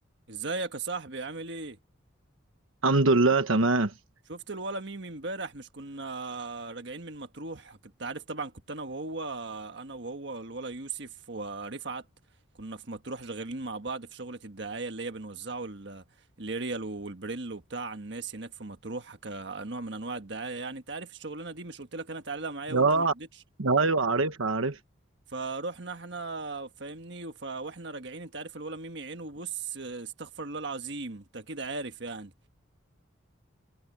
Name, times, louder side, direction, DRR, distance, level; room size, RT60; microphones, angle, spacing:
voice 1, 0.3-1.8 4.3-12.0 12.6-16.0 16.4-23.3 25.3-32.3, right 3 dB, 60° right, 1.5 m, -37 dB
voice 2, 2.8-3.9 22.7-23.1 23.6-24.8, right 3 dB, 85° right, 1.2 m, -23 dB
head